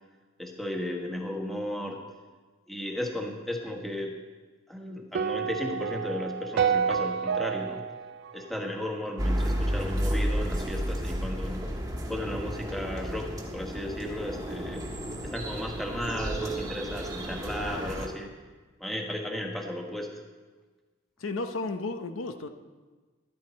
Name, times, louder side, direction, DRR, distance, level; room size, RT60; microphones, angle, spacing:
voice 1, 0.4-2.0 2.7-4.2 4.7-7.8 8.3-11.7 12.1-14.8 15.2-18.3 18.8-20.1, left 1 dB, ahead, 1 dB, 1.3 m, -35 dB
sound 1, 5.1-9.4, right 7 dB, 55° right, 0.3 m, -30 dB
sound 2, 9.2-18.1, equal, 15° right, 1.4 m, -32 dB
voice 2, 21.2-22.5, left 3 dB, 80° left, 7 dB, 0.8 m, -33 dB
13.0 x 11.5 x 4.3 m, 1.3 s
head